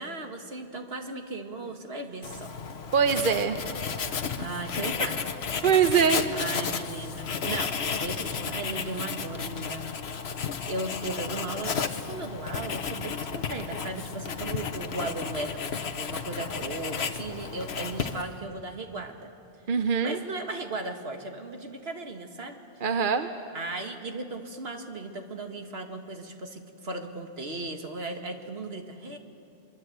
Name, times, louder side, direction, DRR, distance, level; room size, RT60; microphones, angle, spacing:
voice 1, 0.0-2.5 4.4-5.2 5.9-9.9 10.6-15.6 15.9-19.3 19.8-22.9 23.5-29.2, right 2 dB, 75° right, 4 dB, 2.1 m, -36 dB
Writing, 2.2-18.4, left 6 dB, 90° left, 1.3 m, -33 dB
voice 2, 2.9-3.6 5.6-6.3 19.7-20.2 22.8-23.3, right 7 dB, 55° right, 8 dB, 1.0 m, -23 dB
24.5 x 24.0 x 8.0 m, 2.5 s
omnidirectional pair, 1.0 m